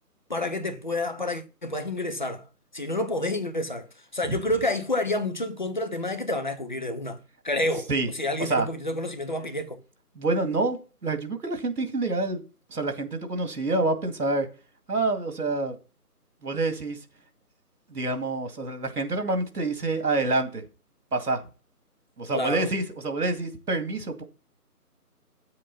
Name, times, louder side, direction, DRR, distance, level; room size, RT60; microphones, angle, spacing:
voice 1, 0.3-2.4 2.7-3.9 4.1-7.2 7.4-7.9 8.1-9.8 22.3-22.7, left 1 dB, 30° left, 0.8 m, -29 dB
voice 2, 10.2-12.4 12.7-14.5 14.9-15.8 16.4-17.0 17.9-20.6 21.1-21.4 22.2-24.2, right 2 dB, 75° right, 2.3 m, -27 dB
9.6 x 7.6 x 4.2 m
figure-of-eight pair, 165°, 46 cm